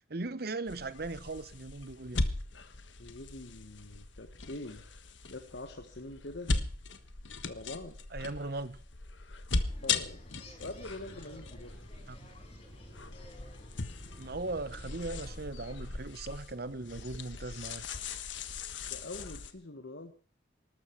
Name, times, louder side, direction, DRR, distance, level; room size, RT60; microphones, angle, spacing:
voice 1, 0.0-2.3 8.1-8.8 12.1-12.3 14.2-17.8, right 2 dB, 55° right, 0.9 m, -38 dB
sound 1, 0.7-19.5, left 3 dB, 80° left, 1.4 m, -39 dB
voice 2, 3.0-4.8 5.3-6.5 7.4-8.0 9.8-10.2 10.6-11.8 18.9-20.1, left 2 dB, 65° left, 1.4 m, -44 dB
sound 2, 9.5-15.8, equal, 35° left, 5.2 m, -52 dB
19.5 x 13.0 x 4.6 m
head